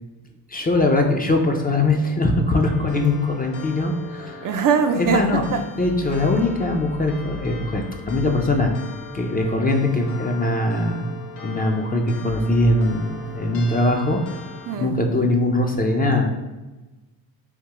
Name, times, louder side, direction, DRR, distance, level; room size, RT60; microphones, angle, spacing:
voice 1, 0.5-4.5 5.0-5.4 5.8-8.7 9.1-11.1 11.4-14.2 14.8-16.3, left 2 dB, 20° left, 0.4 m, -21 dB
sound 1, 2.6-14.8, left 4 dB, 85° left, 0.7 m, -40 dB
voice 2, 4.4-5.6 14.7-15.0, right 6 dB, 50° right, 0.5 m, -22 dB
3.5 x 2.7 x 2.9 m
supercardioid pair, 60°, 43 cm